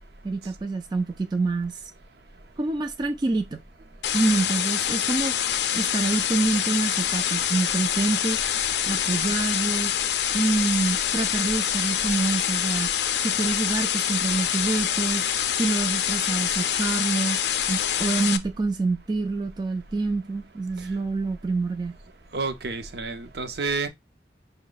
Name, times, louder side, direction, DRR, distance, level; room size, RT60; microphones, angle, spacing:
voice 1, 0.2-1.8 2.6-3.6 4.1-5.4 5.7-8.4 8.8-9.9 10.3-12.9 13.2-15.2 15.5-17.4 17.7-22.0, right 3 dB, 25° right, 0.3 m, -26 dB
sound 1, 4.0-18.4, left 10 dB, 70° left, 0.4 m, -25 dB
voice 2, 22.3-23.9, right 3 dB, 60° right, 0.6 m, -29 dB
5.4 x 2.1 x 3.8 m
head